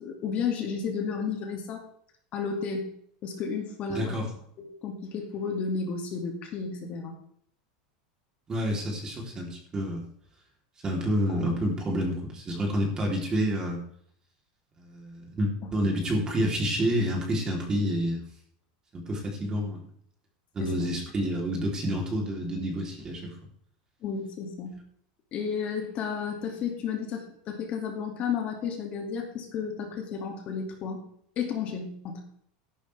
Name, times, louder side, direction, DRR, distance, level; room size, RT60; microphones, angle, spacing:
voice 1, 0.0-1.8 2.3-2.9 3.2-4.1 4.6-7.1 11.3-11.4 20.6-20.7 24.0-24.7 25.3-31.0 31.4-32.2, left 6 dB, 35° left, 2 dB, 2.4 m, -32 dB
voice 2, 3.9-4.3 8.5-10.0 10.8-13.8 14.8-18.2 18.9-19.8 20.5-23.3, equal, 20° right, 0 dB, 3.5 m, -28 dB
14.0 x 11.5 x 3.5 m, 0.65 s
supercardioid pair, 160°, 4 cm